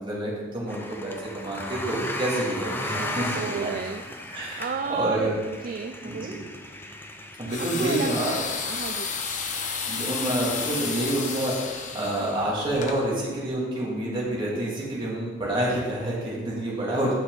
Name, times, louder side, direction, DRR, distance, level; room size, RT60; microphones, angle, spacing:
voice 1, 0.0-3.7 4.3-5.4 6.0-6.4 7.4-8.4 9.9-17.1, right 1 dB, 25° right, -6 dB, 2.9 m, -28 dB
sound 1, 0.7-12.1, left 1 dB, 10° left, 0.7 m, -37 dB
voice 2, 2.9-4.3 4.6-6.4 7.6-9.1 16.7-17.0, right 5 dB, 45° right, 7 dB, 0.4 m, -33 dB
sound 2, 7.5-13.0, left 5 dB, 40° left, 0.9 m, -32 dB
10.0 x 6.7 x 4.0 m, 1.4 s
head